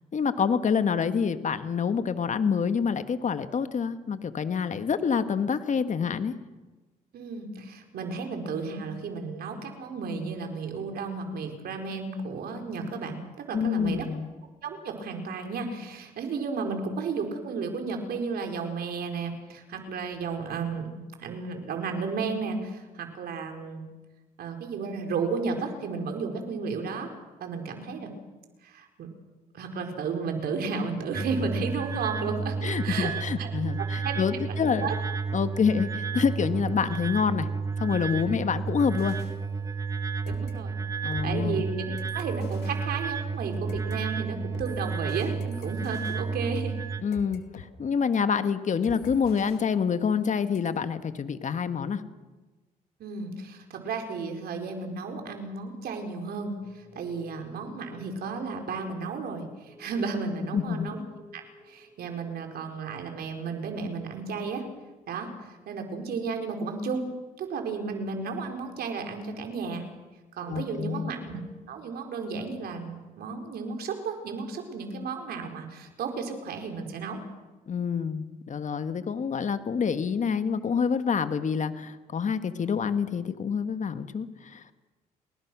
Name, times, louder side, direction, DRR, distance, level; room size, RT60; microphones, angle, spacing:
voice 1, 0.1-6.3 13.5-14.3 32.6-34.9 35.3-37.5 37.8-39.2 41.0-41.6 47.0-52.0 60.5-60.9 70.5-71.1 77.7-84.7, left 6 dB, 50° left, 10 dB, 1.7 m, -27 dB
voice 2, 7.1-13.2 13.5-14.1 14.6-20.9 21.2-23.8 24.4-27.1 27.4-28.1 28.6-29.1 29.5-32.6 32.8-33.5 34.0-34.9 40.3-40.8 41.2-46.7 53.0-61.0 61.3-64.6 65.1-67.1 67.4-69.8 70.3-71.4 71.7-77.2, right 4 dB, 70° right, 4 dB, 4.6 m, -33 dB
sound 1, 31.1-47.0, right 5 dB, 20° right, 1.7 m, -32 dB
sound 2, 38.8-40.0 40.3-44.0 44.5-47.7 48.0-48.2 48.8-50.3 50.5-50.7, left 8 dB, 80° left, 2.1 m, -49 dB
sound 3, 56.4-64.9 65.2-65.8 66.1-66.2 66.7-66.8 67.8-70.0 70.3-70.4 70.6-71.5, left 2 dB, 15° left, 7.4 m, -55 dB
30.0 x 20.5 x 6.3 m, 1.2 s
supercardioid pair, 65°, 16 cm